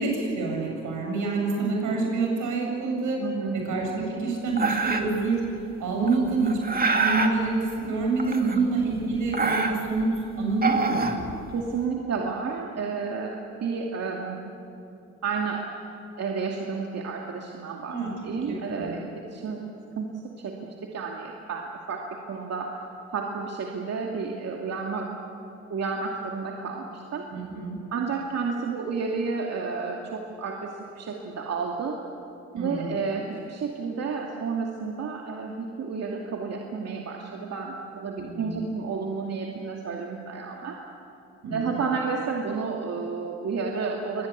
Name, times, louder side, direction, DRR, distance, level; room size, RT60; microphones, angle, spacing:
voice 1, 0.0-3.2 3.5-5.4 5.8-10.1 10.4-11.2 17.9-19.0 27.3-27.8 32.6-33.0 38.2-38.6 41.4-41.8, right 3 dB, 80° right, 0 dB, 7.8 m, -27 dB
voice 2, 3.2-3.6 6.0-6.4 8.4-8.6 11.5-14.5 15.2-15.6 16.2-19.6 20.0-22.7 23.1-25.1 25.7-27.3 27.9-32.0 32.5-40.8 41.5-44.3, right 5 dB, 55° right, 0 dB, 2.5 m, -31 dB
sound 1, 4.6-5.2 6.1-7.3 8.2-8.8 9.1-10.0 10.5-11.7, right 3 dB, 30° right, 2.4 m, -26 dB
24.5 x 20.5 x 8.4 m, 2.7 s
cardioid pair, 90°, 30 cm